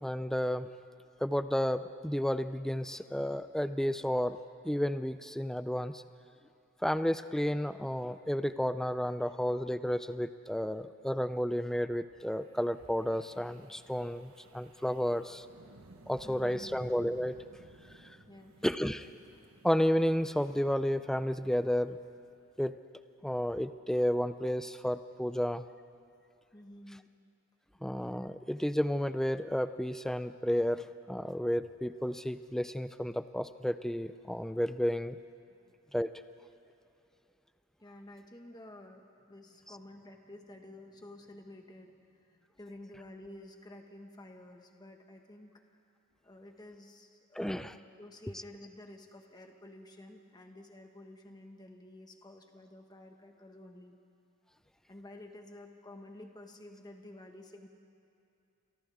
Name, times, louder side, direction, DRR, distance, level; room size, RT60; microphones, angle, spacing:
voice 1, 0.0-0.7 1.2-4.4 4.6-6.0 6.8-15.5 16.1-17.4 18.6-19.1 19.6-22.0 22.6-22.8 23.2-25.6 27.8-35.2 35.9-36.1 47.4-47.7, equal, ahead, 11 dB, 0.4 m, -32 dB
Wind, 12.4-22.7, right 2 dB, 80° right, 1.3 m, -58 dB
voice 2, 16.2-16.8 18.3-18.6 26.5-27.1 35.5-35.7 37.8-45.5 46.2-54.0 54.9-57.7, left 1 dB, 20° left, 3 dB, 1.6 m, -51 dB
30.0 x 28.0 x 3.6 m, 2.6 s
head